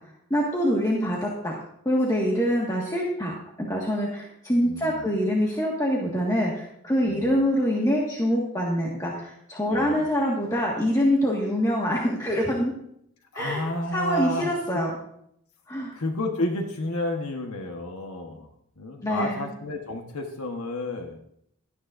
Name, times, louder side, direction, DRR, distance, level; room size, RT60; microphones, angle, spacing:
voice 1, 0.3-1.6 1.9-12.7 13.3-13.6 13.9-14.9 15.7-15.9 19.0-19.4, equal, 15° left, -4 dB, 1.8 m, -25 dB
voice 2, 4.6-5.1 7.0-7.4 9.6-10.1 13.3-14.8 15.9-18.5 18.8-21.2, left 1 dB, 80° left, 3 dB, 1.3 m, -31 dB
17.0 x 13.0 x 2.6 m, 0.73 s
head